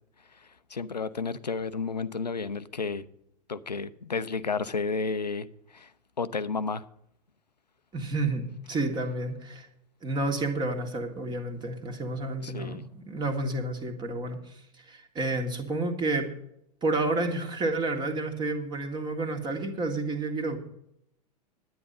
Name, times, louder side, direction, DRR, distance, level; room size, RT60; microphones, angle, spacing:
voice 1, 0.3-3.1 3.5-5.9 6.2-6.8 12.4-12.8, left 4 dB, 85° left, 15 dB, 0.6 m, -32 dB
voice 2, 7.9-9.7 10.0-16.3 16.8-20.6, right 2 dB, 20° right, 5 dB, 1.7 m, -30 dB
10.5 x 9.3 x 5.5 m, 0.76 s
figure-of-eight pair, 95°, 21 cm